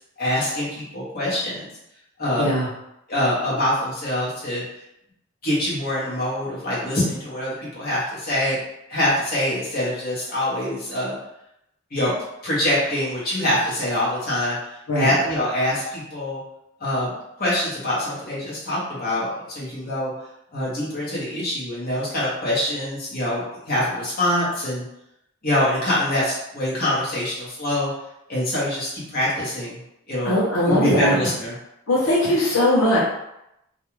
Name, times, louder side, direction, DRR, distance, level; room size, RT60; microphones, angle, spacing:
voice 1, 0.2-1.6 2.2-2.5 3.1-4.6 5.4-8.6 8.9-11.1 11.9-12.1 12.4-14.6 14.9-16.4 16.8-17.1 17.4-20.1 20.5-24.8 25.4-27.9 28.3-29.8 30.1-30.3 30.7-31.5, left 1 dB, 45° left, -7 dB, 0.9 m, -24 dB
voice 2, 2.4-2.7 14.9-15.1 30.2-31.2 31.9-33.0, left 1 dB, 80° left, -6 dB, 0.7 m, -20 dB
2.4 x 2.2 x 3.0 m, 0.82 s
head